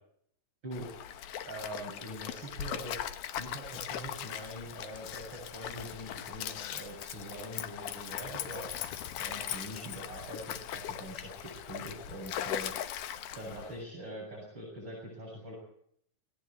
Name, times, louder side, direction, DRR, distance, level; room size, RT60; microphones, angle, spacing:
Stream, 0.7-13.8, left 10 dB, 70° left, 2.5 m, -39 dB
voice 1, 1.5-12.7 13.3-15.5, right 1 dB, 30° right, -3 dB, 8.0 m, -44 dB
20.0 x 18.0 x 8.2 m, 0.67 s
omnidirectional pair, 3.9 m